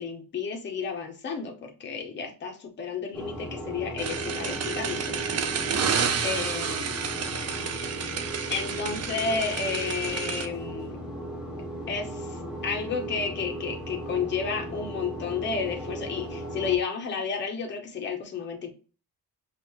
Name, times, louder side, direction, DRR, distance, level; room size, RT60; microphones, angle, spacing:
voice 1, 0.0-5.2 6.2-6.9 8.5-11.0 11.9-18.7, left 5 dB, 30° left, 1 dB, 0.7 m, -32 dB
sound 1, 3.1-16.8, right 1 dB, ahead, 0.9 m, -37 dB
sound 2, 4.0-10.5, right 6 dB, 40° right, 0.5 m, -30 dB
5.3 x 2.5 x 2.9 m, 0.36 s
wide cardioid pair, 175°, 39 cm